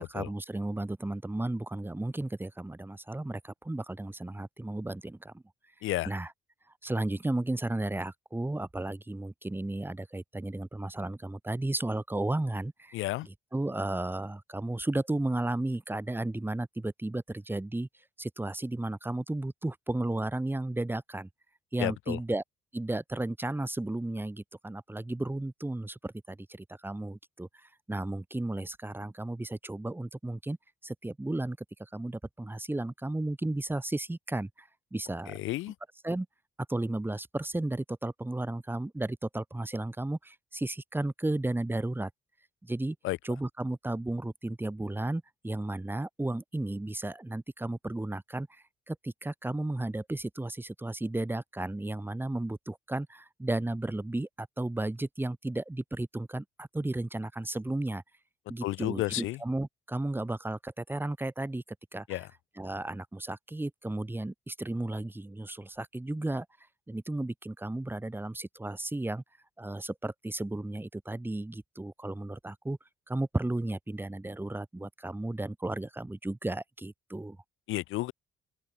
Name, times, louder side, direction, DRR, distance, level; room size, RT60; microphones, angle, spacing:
voice 1, 0.1-5.4 6.1-6.3 6.8-12.9 13.2-17.9 18.2-21.3 21.7-22.4 22.7-27.5 27.9-30.6 30.8-31.6 31.9-35.4 36.0-36.3 36.7-42.1 42.6-43.0 43.2-58.0 58.5-61.6 61.9-62.3 62.6-66.5 66.9-69.2 69.6-72.8 73.1-77.4, right 2 dB, 10° right, 1.8 m, -34 dB
voice 2, 12.9-13.3 21.8-22.2 35.3-35.7 43.0-43.2 58.6-59.4 62.1-62.3 77.7-78.1, left 17 dB, 85° left, 0.6 m, -32 dB
open air
cardioid pair, 90°, 20 cm